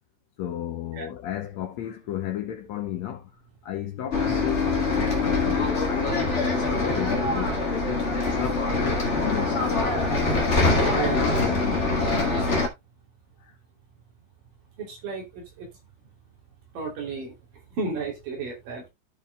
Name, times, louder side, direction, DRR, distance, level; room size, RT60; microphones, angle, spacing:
voice 1, 0.4-4.7 5.0-8.1 8.4-10.1 11.1-12.0 13.4-13.5, left 10 dB, 70° left, 1.8 m, -34 dB
Bus, 4.1-12.7, left 3 dB, 40° left, 1.0 m, -24 dB
voice 2, 14.8-15.7 16.7-17.4 17.7-18.9, right 4 dB, 75° right, 4.7 m, -33 dB
14.5 x 5.1 x 2.2 m
omnidirectional pair, 3.9 m